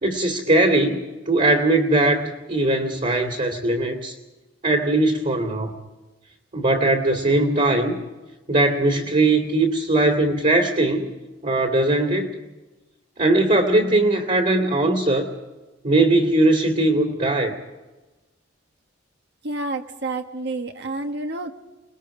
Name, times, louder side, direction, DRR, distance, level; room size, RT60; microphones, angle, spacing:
voice 1, 0.0-1.0 1.3-4.2 4.6-5.7 6.5-8.0 8.5-11.1 11.4-12.3 13.2-15.3 15.8-17.6, right 2 dB, 45° right, 3 dB, 2.6 m, -20 dB
voice 2, 19.4-21.5, right 2 dB, 65° right, 5 dB, 1.4 m, -29 dB
28.5 x 20.5 x 5.0 m, 1.1 s
head